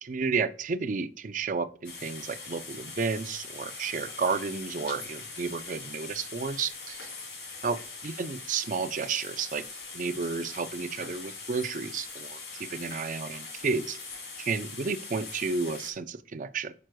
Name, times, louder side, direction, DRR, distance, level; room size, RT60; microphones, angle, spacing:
voice 1, 0.0-7.1 7.6-9.6 9.9-14.0 14.4-16.7, right 5 dB, 45° right, 11 dB, 0.5 m, -32 dB
sound 1, 1.8-15.9, left 4 dB, 75° left, 3.0 m, -42 dB
9.1 x 6.1 x 2.2 m, 0.42 s
head